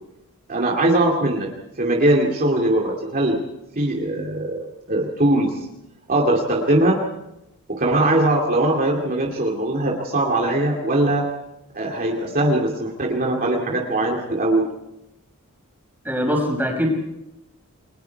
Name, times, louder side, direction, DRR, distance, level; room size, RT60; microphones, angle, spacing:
voice 1, 0.5-1.5 1.8-3.4 3.8-5.7 6.1-7.0 7.7-11.3 11.7-14.7, right 1 dB, 40° right, -1 dB, 2.5 m, -21 dB
voice 2, 16.0-16.9, equal, 10° right, 1 dB, 5.5 m, -22 dB
29.5 x 22.5 x 4.7 m, 0.90 s
head